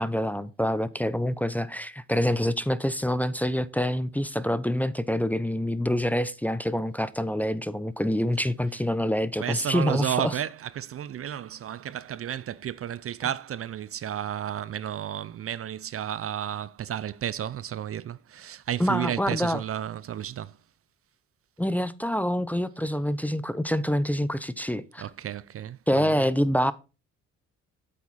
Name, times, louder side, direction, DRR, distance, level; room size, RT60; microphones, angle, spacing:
voice 1, 0.0-10.4 18.8-19.6 21.6-25.1 25.9-26.7, equal, 5° left, 0.6 m, -26 dB
voice 2, 9.4-20.6 25.0-26.2, right 10 dB, 50° right, 0.5 m, -32 dB
8.3 x 7.4 x 4.1 m
cardioid pair, 90°, 30 cm